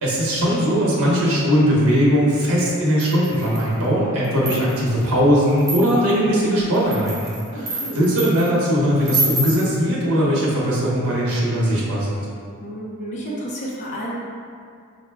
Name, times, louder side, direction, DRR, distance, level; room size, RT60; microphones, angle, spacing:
voice 1, 0.0-12.3, equal, 90° right, -5 dB, 0.9 m, -19 dB
sound 1, 3.0-3.7 4.2-4.9 5.6-6.1 6.7-8.5 9.0-9.7, right 2 dB, 15° right, 0.6 m, -27 dB
voice 2, 7.5-8.1 12.6-14.1, equal, 35° left, -5 dB, 0.6 m, -31 dB
5.2 x 2.1 x 3.3 m, 2.2 s
head